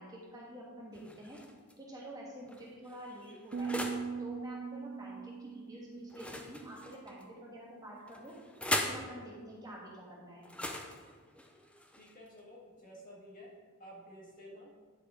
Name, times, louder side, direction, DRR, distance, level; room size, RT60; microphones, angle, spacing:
voice 1, 0.0-1.4 1.8-3.8 4.2-8.3 8.8-10.5, equal, 15° right, -4 dB, 1.6 m, -48 dB
sound 1, 0.9-1.7 2.5-4.1 6.1-7.2 8.1-9.1 10.4-12.4, left 1 dB, 5° left, 0.6 m, -39 dB
sound 2, 3.5-6.9, right 5 dB, 40° right, 0.4 m, -41 dB
voice 2, 12.0-13.5 13.8-14.7, equal, 40° left, -3 dB, 1.7 m, -52 dB
10.0 x 4.9 x 4.9 m, 1.5 s
head